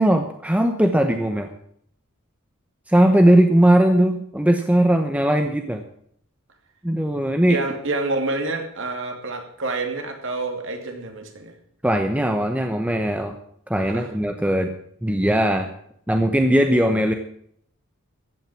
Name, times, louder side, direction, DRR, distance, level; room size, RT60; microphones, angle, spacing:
voice 1, 0.0-1.5 2.9-5.8 6.8-7.6 11.8-13.4 13.7-14.7 15.0-15.7 16.1-17.1, right 1 dB, 5° right, 5 dB, 0.9 m, -19 dB
voice 2, 7.5-11.5 13.8-14.1, right 2 dB, 65° right, 4 dB, 2.7 m, -28 dB
15.0 x 8.8 x 7.5 m, 0.67 s
head